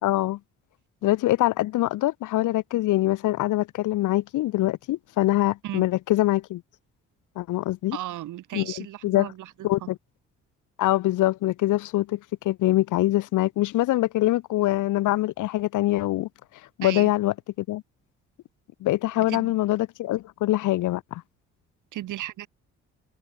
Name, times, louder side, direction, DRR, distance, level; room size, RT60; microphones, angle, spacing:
voice 1, 0.0-0.4 1.0-6.6 7.4-8.0 8.5-9.3 9.6-10.0 10.8-12.2 12.4-16.3 16.8-17.3 17.7-17.8 18.8-21.2, left 16 dB, 80° left, 1.0 m, -24 dB
voice 2, 7.9-9.5 9.8-9.9 16.8-17.1 19.1-19.5 21.9-22.5, right 14 dB, 80° right, 5.0 m, -35 dB
cardioid pair, 90°, 30 cm